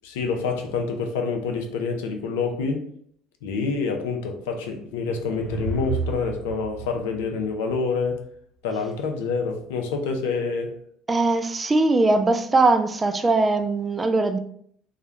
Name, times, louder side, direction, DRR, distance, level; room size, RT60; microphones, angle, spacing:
voice 1, 0.0-2.9 3.4-8.2 8.6-10.8, left 4 dB, 75° left, 0.4 m, -27 dB
sound 1, 4.8-8.1, right 3 dB, 65° right, 0.7 m, -33 dB
voice 2, 11.1-14.4, right 2 dB, 25° right, 0.3 m, -20 dB
2.3 x 2.1 x 2.9 m
hypercardioid pair, 60°, 0 cm